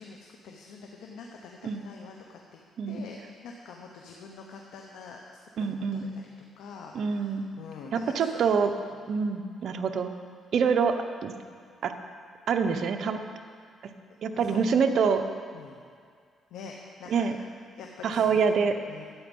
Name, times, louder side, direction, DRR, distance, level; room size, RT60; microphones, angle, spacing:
voice 1, 0.0-2.6 2.9-5.2 5.6-6.2 6.6-8.4 14.3-14.6 15.5-15.8 16.5-17.3 17.7-18.4 18.9-19.1, left 5 dB, 85° left, 1 dB, 1.0 m, -45 dB
voice 2, 5.6-6.1 6.9-7.5 7.9-8.7 9.1-10.1 10.5-10.9 11.2-11.3 11.8-11.9 12.5-13.2 14.2-15.2 17.1-17.4 18.0-18.7, right 6 dB, 65° right, 6 dB, 0.9 m, -25 dB
12.5 x 8.6 x 5.4 m, 2.1 s
cardioid pair, 90°, 0 cm